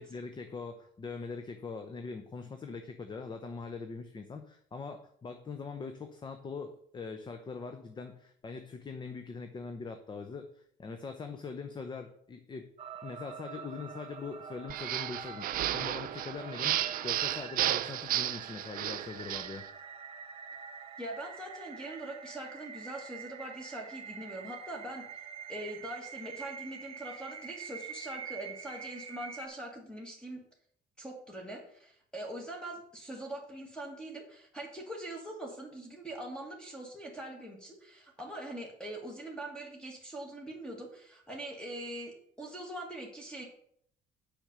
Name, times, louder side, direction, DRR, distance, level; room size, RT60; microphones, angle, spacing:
voice 1, 0.0-12.7 13.0-19.6, left 4 dB, 25° left, 6 dB, 0.7 m, -42 dB
sound 1, 12.8-29.5, right 6 dB, 35° right, 0.7 m, -46 dB
sound 2, 14.7-19.6, right 13 dB, 60° right, 0.4 m, -33 dB
voice 2, 21.0-25.1 25.5-30.4 31.0-43.5, right 1 dB, 5° left, 0 dB, 1.7 m, -42 dB
6.1 x 5.0 x 6.7 m, 0.66 s
cardioid pair, 110°, 17 cm